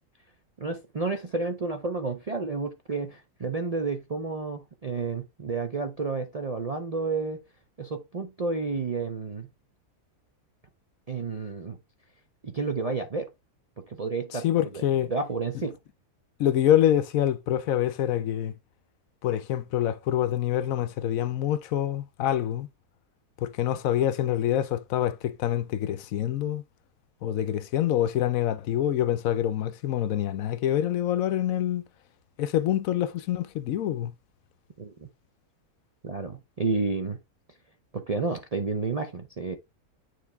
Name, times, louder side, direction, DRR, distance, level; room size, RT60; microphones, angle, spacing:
voice 1, 0.6-7.4 7.8-9.5 11.1-11.8 12.4-13.3 13.8-14.4 14.7-14.8 15.1-15.8 34.8-35.1 36.0-37.2 37.9-39.6, right 4 dB, 45° right, 0.5 m, -31 dB
voice 2, 14.3-15.1 16.4-18.5 19.2-22.7 23.4-26.6 27.2-31.8 32.4-34.1, left 11 dB, 70° left, 0.9 m, -26 dB
9.3 x 3.3 x 3.4 m
omnidirectional pair, 1.6 m